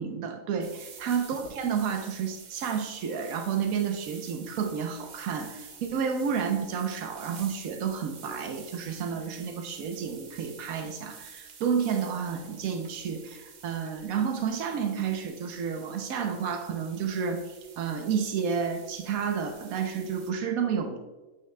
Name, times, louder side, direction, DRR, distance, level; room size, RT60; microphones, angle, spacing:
voice 1, 0.0-21.0, right 7 dB, 85° right, 4 dB, 1.2 m, -31 dB
sound 1, 0.6-20.3, right 5 dB, 45° right, 0.6 m, -49 dB
9.3 x 6.3 x 2.2 m, 1.2 s
omnidirectional pair, 1.4 m